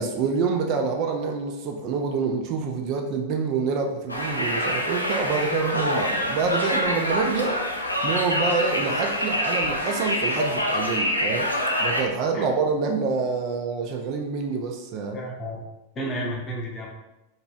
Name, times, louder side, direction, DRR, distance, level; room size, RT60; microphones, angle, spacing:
voice 1, 0.0-7.6 8.0-11.5 11.8-15.2, right 5 dB, 40° right, 3 dB, 0.3 m, -26 dB
Conversation, 4.1-12.0, equal, 85° left, 0.3 m, -26 dB
voice 2, 15.1-15.6 15.9-16.9, right 1 dB, 25° left, -2 dB, 0.7 m, -31 dB
2.8 x 2.6 x 2.3 m, 0.94 s
figure-of-eight pair, 90°, 0 cm